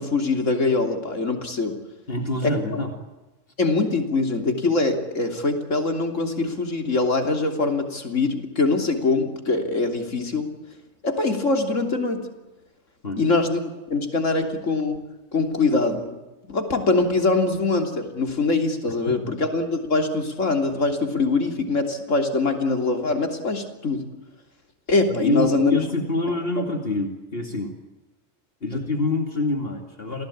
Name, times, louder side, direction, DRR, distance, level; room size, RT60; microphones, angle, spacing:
voice 1, 0.0-1.8 2.4-2.5 3.6-10.5 11.0-12.3 13.2-13.6 13.9-15.0 15.3-16.2 16.5-24.0 24.9-25.8, left 3 dB, 75° left, 5 dB, 3.5 m, -23 dB
voice 2, 2.1-2.9 13.0-13.2 25.2-27.7 28.6-30.3, left 2 dB, 50° left, 4 dB, 2.8 m, -26 dB
29.0 x 18.0 x 8.7 m, 1.1 s
omnidirectional pair, 1.3 m